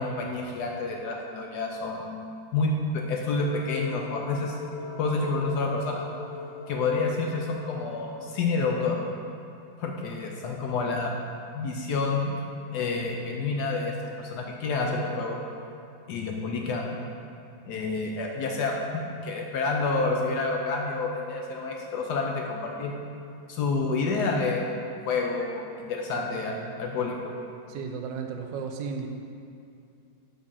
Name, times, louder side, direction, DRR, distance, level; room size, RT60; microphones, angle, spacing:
voice 1, 0.0-2.1 2.5-4.5 5.0-6.0 6.7-9.0 9.8-11.1 11.5-12.3 12.7-15.4 16.1-17.0 17.7-22.9 23.5-24.7 25.1-27.2, left 3 dB, 70° left, 1 dB, 1.0 m, -29 dB
sound 1, 3.4-8.4, left 4 dB, 90° left, 1.4 m, -39 dB
voice 2, 27.7-29.1, right 6 dB, 75° right, 4 dB, 1.2 m, -35 dB
7.3 x 3.7 x 5.5 m, 2.5 s
omnidirectional pair, 2.1 m